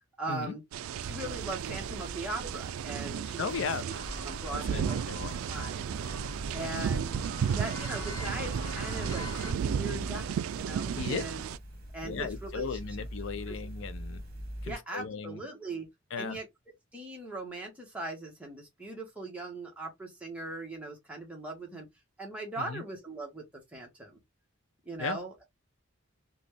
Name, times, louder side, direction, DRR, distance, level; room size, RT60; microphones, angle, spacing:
voice 1, 0.2-0.6 1.0-3.5 4.2-5.0 5.5-5.9 6.5-7.1 7.5-11.5 11.9-12.9 13.5-13.6 14.6-15.9 16.2-16.4 16.9-21.9 22.2-24.2 24.8-25.4, right 2 dB, 5° right, 1.2 m, -40 dB
sound 1, 0.7-11.6, right 8 dB, 85° right, 0.3 m, -34 dB
sound 2, 1.0-14.7, equal, 45° right, 1.2 m, -45 dB
voice 2, 3.4-3.8 4.5-5.4 6.6-6.9 11.0-11.2 12.0-14.2 14.6-15.4 16.1-16.4 22.6-22.8 25.0-25.2, left 5 dB, 65° left, 0.4 m, -36 dB
sound 3, 3.9-9.5, left 1 dB, 20° left, 1.3 m, -42 dB
3.9 x 2.3 x 3.3 m
head